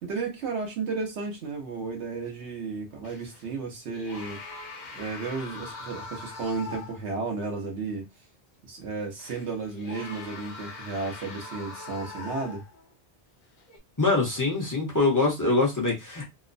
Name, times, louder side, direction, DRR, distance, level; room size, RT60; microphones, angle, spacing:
voice 1, 0.0-4.4 5.0-8.1 8.7-12.6, right 4 dB, 90° right, 1.1 m, -33 dB
sound 1, 3.0-3.5 3.9-7.2 7.6-7.7 9.2-12.9 13.6-13.8, left 3 dB, 50° left, 0.7 m, -42 dB
voice 2, 14.0-16.2, left 3 dB, 20° left, 0.9 m, -24 dB
3.0 x 2.1 x 2.5 m
omnidirectional pair, 1.1 m